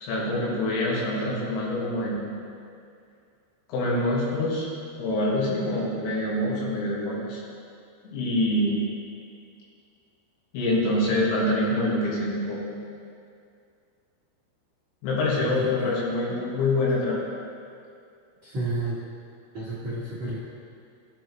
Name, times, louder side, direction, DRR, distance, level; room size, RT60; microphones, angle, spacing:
voice 1, 0.0-2.2 3.7-4.7 5.0-7.4 8.1-8.8 10.5-12.6 15.0-17.2, left 1 dB, 80° left, -5 dB, 3.9 m, -25 dB
voice 2, 15.3-16.0 18.4-19.0 19.5-20.4, right 2 dB, 80° right, -10 dB, 1.1 m, -32 dB
16.0 x 6.1 x 3.0 m, 2.4 s
omnidirectional pair, 5.2 m